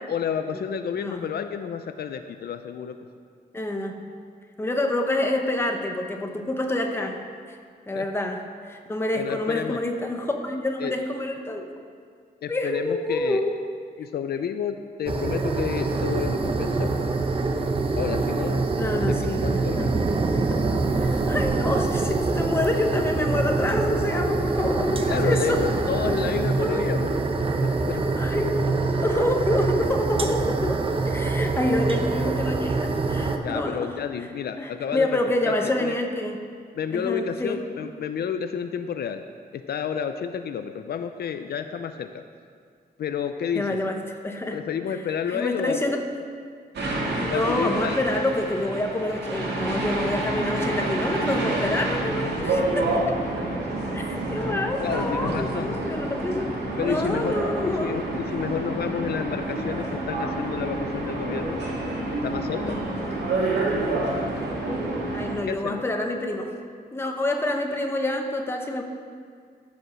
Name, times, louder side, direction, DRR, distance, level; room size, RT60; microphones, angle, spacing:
voice 1, 0.1-3.0 7.9-8.1 9.1-9.8 10.8-10.9 12.4-13.4 14.0-17.1 17.9-18.6 18.9-19.9 25.1-27.1 27.6-28.0 33.4-36.0 36.8-39.2 39.5-42.2 43.0-43.8 44.5-46.0 47.3-48.0 54.8-55.7 56.8-57.4 57.7-61.6 62.2-62.8 65.4-65.8, left 7 dB, 70° left, 8 dB, 0.5 m, -30 dB
voice 2, 3.5-4.0 4.6-7.2 7.9-11.6 12.5-13.6 18.8-20.1 20.5-20.6 21.0-25.6 26.6-27.0 28.1-34.0 34.6-36.4 36.9-37.6 43.5-44.6 45.3-46.0 47.2-53.2 53.9-56.5 56.8-58.0 65.1-66.5 66.9-68.8, left 1 dB, 15° left, 3 dB, 0.9 m, -27 dB
sound 1, 15.1-33.4, right 3 dB, 30° right, 0.7 m, -25 dB
sound 2, 46.7-65.3, right 2 dB, 80° right, 2.1 m, -28 dB
14.5 x 5.3 x 6.1 m, 2.1 s
wide cardioid pair, 175°, 17 cm